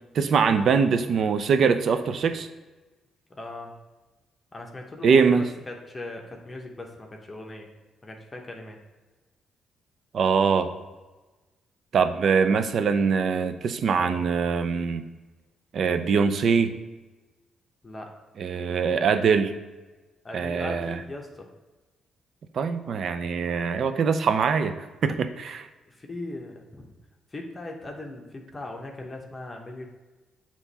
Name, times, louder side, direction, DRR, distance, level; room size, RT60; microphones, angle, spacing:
voice 1, 0.1-2.5 5.0-5.5 10.1-10.7 11.9-15.0 15.7-16.7 18.4-19.5 20.3-21.0 22.5-25.7, right 5 dB, 60° right, 10 dB, 0.5 m, -23 dB
voice 2, 3.3-3.7 4.5-7.7 8.0-8.8 14.0-14.1 17.8-18.1 20.2-21.5 25.9-26.9 27.3-29.9, left 2 dB, 25° left, 1 dB, 0.9 m, -39 dB
7.9 x 3.0 x 4.1 m, 1.2 s
cardioid pair, 90°, 0 cm